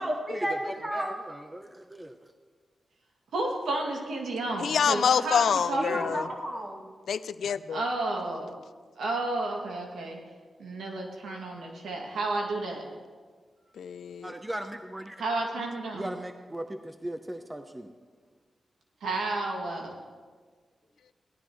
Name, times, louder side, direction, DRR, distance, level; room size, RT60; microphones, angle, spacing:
voice 1, 0.0-1.1 5.8-6.8, equal, 40° right, -3 dB, 3.4 m, -32 dB
voice 2, 0.9-2.2 14.2-15.2 15.9-17.9, right 1 dB, 15° right, 7 dB, 0.8 m, -38 dB
voice 3, 3.3-6.1 7.7-8.5 9.0-10.2 10.6-12.8 15.2-16.2 19.0-19.9, right 2 dB, 90° right, 0 dB, 2.3 m, -31 dB
voice 4, 4.6-6.3 7.1-7.8 13.8-14.3, left 7 dB, 85° left, 14 dB, 0.4 m, -26 dB
18.0 x 12.5 x 3.2 m, 1.5 s
cardioid pair, 70°, 0 cm